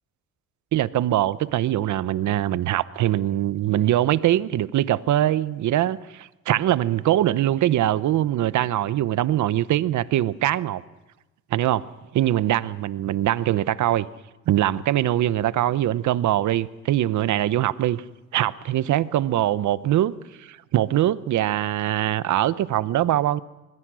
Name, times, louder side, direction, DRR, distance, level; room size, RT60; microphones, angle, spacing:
voice 1, 0.7-10.8 11.5-11.9 12.1-14.1 14.5-18.0 18.3-20.1 20.4-23.4, right 13 dB, 75° right, 0.9 m, -22 dB
26.0 x 20.5 x 6.3 m
cardioid pair, 90°, 30 cm